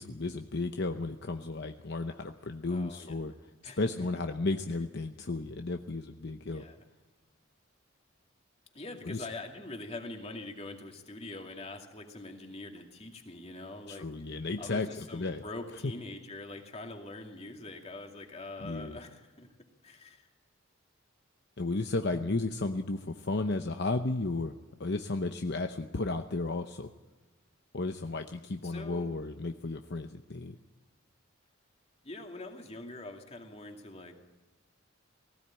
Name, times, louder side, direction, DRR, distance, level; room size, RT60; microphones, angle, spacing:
voice 1, 0.0-3.3 3.8-6.6 9.0-9.3 13.9-15.4 18.6-19.0 21.6-24.5 24.8-26.9 27.7-30.6, left 2 dB, 55° left, 6 dB, 0.8 m, -33 dB
voice 2, 2.7-3.1 3.6-3.8 6.4-6.8 8.7-19.5 19.8-20.3 28.6-29.1 32.0-34.2, left 2 dB, 30° left, 3 dB, 2.4 m, -44 dB
19.0 x 16.0 x 8.9 m, 1.2 s
head